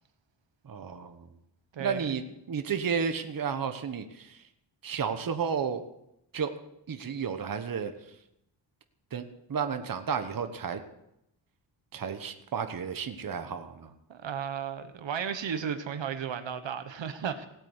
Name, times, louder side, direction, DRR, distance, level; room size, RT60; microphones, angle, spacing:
voice 1, 0.6-1.3 1.8-4.5 4.8-5.8 6.3-6.5 6.9-8.2 9.1-10.8 11.9-13.9, right 6 dB, 50° right, 7 dB, 1.2 m, -32 dB
voice 2, 14.1-17.5, right 7 dB, 80° right, 9 dB, 1.3 m, -34 dB
18.0 x 8.4 x 8.1 m, 0.84 s
wide cardioid pair, 155°, 44 cm